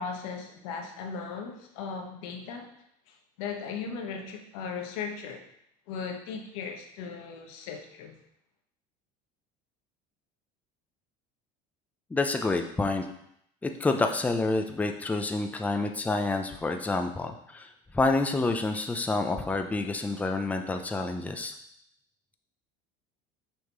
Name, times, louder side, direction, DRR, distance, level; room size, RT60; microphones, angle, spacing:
voice 1, 0.0-2.7 3.1-5.4 5.9-8.2, left 5 dB, 90° left, 3 dB, 1.1 m, -37 dB
voice 2, 12.1-13.1 13.6-17.7 17.9-21.5, left 3 dB, 10° left, 5 dB, 0.5 m, -28 dB
6.4 x 3.6 x 4.6 m, 0.73 s
cardioid pair, 130°, 17 cm